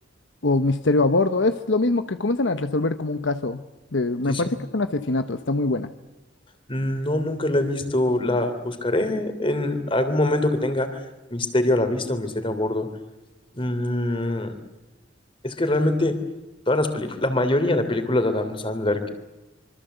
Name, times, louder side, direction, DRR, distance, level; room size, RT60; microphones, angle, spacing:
voice 1, 0.4-3.6 3.9-5.9, left 2 dB, 70° left, 10 dB, 1.0 m, -23 dB
voice 2, 6.7-11.0 11.3-12.9 13.5-14.5 15.4-16.2 16.7-19.1, left 1 dB, 25° left, 9 dB, 3.1 m, -24 dB
26.0 x 24.5 x 8.1 m, 1.0 s
head